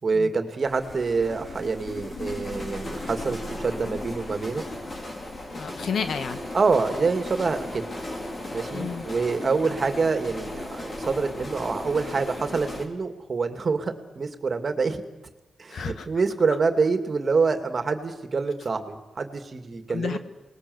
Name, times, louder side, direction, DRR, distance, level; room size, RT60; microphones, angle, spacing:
voice 1, 0.0-4.6 6.5-7.9 8.5-15.0 15.6-20.2, right 4 dB, 40° right, 7 dB, 2.4 m, -26 dB
sound 1, 0.6-12.8, left 1 dB, 35° left, 4.4 m, -36 dB
voice 2, 5.5-6.4 8.7-9.1 15.7-16.1 19.9-20.2, left 6 dB, 70° left, 9 dB, 1.8 m, -31 dB
28.5 x 20.0 x 8.0 m, 1.1 s
cardioid pair, 95°, 0 cm